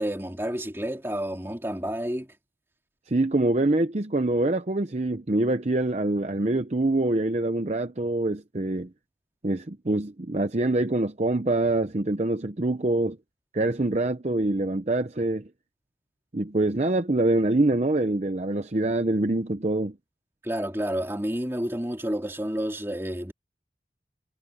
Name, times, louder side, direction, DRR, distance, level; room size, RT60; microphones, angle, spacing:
voice 1, 0.0-2.3 20.4-23.3, equal, 15° right, 3.6 m, -30 dB
voice 2, 3.1-8.9 9.4-13.2 13.5-15.5 16.3-19.9, right 2 dB, 40° right, 0.7 m, -25 dB
head